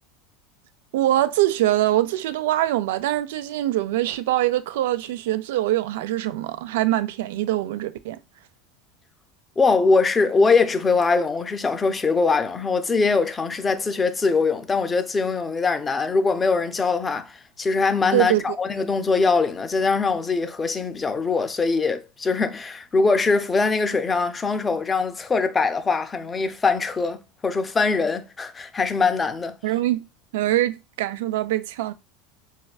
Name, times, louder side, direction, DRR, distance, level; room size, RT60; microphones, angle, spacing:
voice 1, 0.9-8.2 18.1-18.6 29.6-30.0 30.3-31.9, right 14 dB, 80° right, 0.3 m, -23 dB
voice 2, 9.6-29.5, left 4 dB, 15° left, 0.4 m, -22 dB
4.2 x 2.3 x 2.3 m
supercardioid pair, 140°, 0 cm